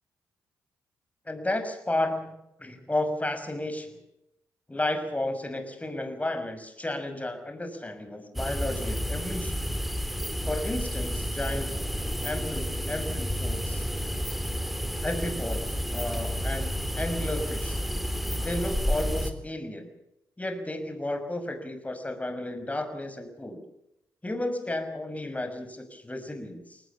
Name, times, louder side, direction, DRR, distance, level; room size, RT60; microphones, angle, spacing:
voice 1, 1.2-4.0 4.7-9.7 10.4-11.7 12.2-13.9 15.0-17.8 18.4-19.9 20.4-23.6 24.2-26.8, left 1 dB, 20° left, 7 dB, 6.0 m, -33 dB
sound 1, 8.4-19.3, equal, ahead, 4.0 m, -30 dB
23.5 x 19.5 x 7.4 m, 0.85 s
hypercardioid pair, 40°, 8 cm